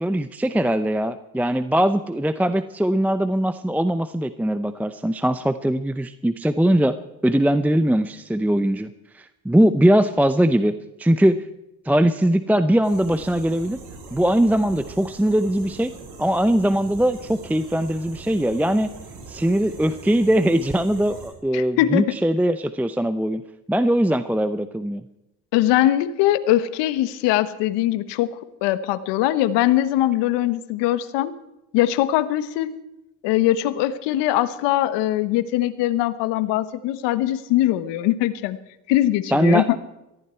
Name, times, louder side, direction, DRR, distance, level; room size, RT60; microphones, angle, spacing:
voice 1, 0.0-7.0 7.2-8.9 9.1-11.4 11.9-13.8 14.1-15.9 16.2-18.9 19.3-23.4 23.7-25.0 39.3-39.7, right 1 dB, 5° right, 12 dB, 0.6 m, -21 dB
sound 1, 12.8-21.3, right 4 dB, 70° right, 6.8 m, -41 dB
voice 2, 21.5-22.1 25.5-28.3 28.6-31.3 31.7-32.7 33.2-38.6 38.9-39.7, left 14 dB, 85° left, 14 dB, 1.3 m, -21 dB
18.0 x 14.5 x 4.5 m, 0.92 s
cardioid pair, 90°, 41 cm